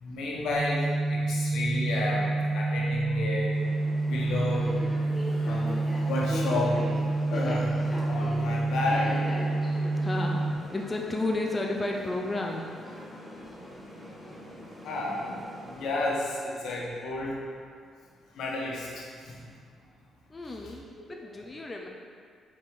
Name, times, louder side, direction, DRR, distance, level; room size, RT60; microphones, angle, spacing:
voice 1, 0.0-3.5 4.1-4.7 5.5-5.7 6.1-6.8 7.3-7.7 8.1-9.1 14.8-15.3 15.8-17.4 18.4-19.1, left 2 dB, 75° left, -3 dB, 1.2 m, -31 dB
sound 1, 0.5-10.5, right 2 dB, 85° right, 1.1 m, -28 dB
sound 2, 3.5-15.9, equal, ahead, 1.5 m, -41 dB
voice 2, 10.0-12.7 20.3-21.9, left 2 dB, 20° left, 0 dB, 0.5 m, -32 dB
5.1 x 4.2 x 4.7 m, 2.1 s
cardioid pair, 90°, 0 cm